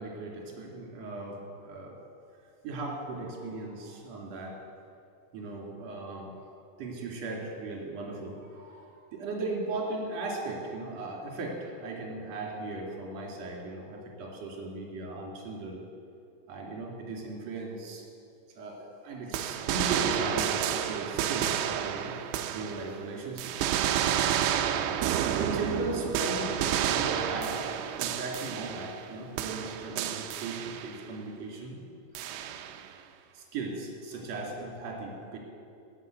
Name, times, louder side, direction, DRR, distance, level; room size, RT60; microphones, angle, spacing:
voice 1, 0.0-2.0 2.6-4.5 5.3-6.3 6.8-15.8 16.5-18.0 18.6-22.1 22.5-23.7 25.4-31.8 32.2-32.4 33.3-35.4, right 2 dB, 40° right, -3 dB, 3.2 m, -37 dB
sound 1, 19.3-23.1 23.4-29.1 29.4-31.0 32.2-32.9, right 10 dB, 80° right, 2.6 m, -30 dB
12.0 x 9.7 x 8.1 m, 2.5 s
omnidirectional pair, 5.4 m